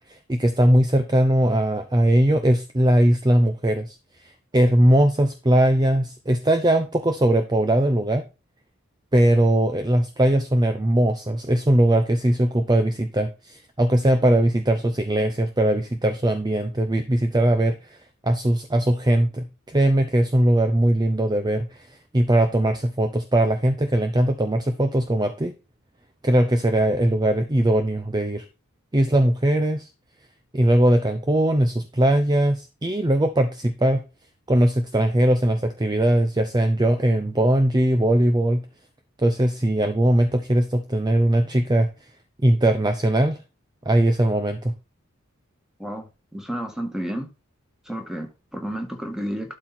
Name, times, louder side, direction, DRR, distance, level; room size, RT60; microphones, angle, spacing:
voice 1, 0.1-4.0 4.2-8.2 9.1-17.9 18.2-21.9 22.1-25.5 26.2-28.4 28.9-29.9 30.5-34.0 34.5-38.6 39.2-41.9 42.4-43.4 43.9-44.7, right 1 dB, 20° right, 0.7 m, -20 dB
voice 2, 46.3-47.3 47.9-49.6, equal, 5° right, 1.9 m, -31 dB
12.0 x 4.4 x 4.3 m
head